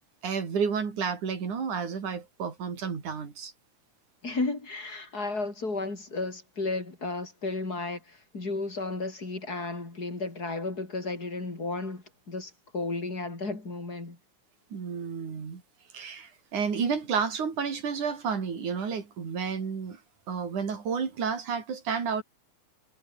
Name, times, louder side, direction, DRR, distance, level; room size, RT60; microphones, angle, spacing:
voice 1, 0.2-3.5 14.7-15.6 15.9-20.0 20.3-22.2, right 6 dB, 85° right, 5.4 m, -31 dB
voice 2, 4.2-14.2, left 3 dB, 30° left, 5.3 m, -33 dB
omnidirectional pair, 3.4 m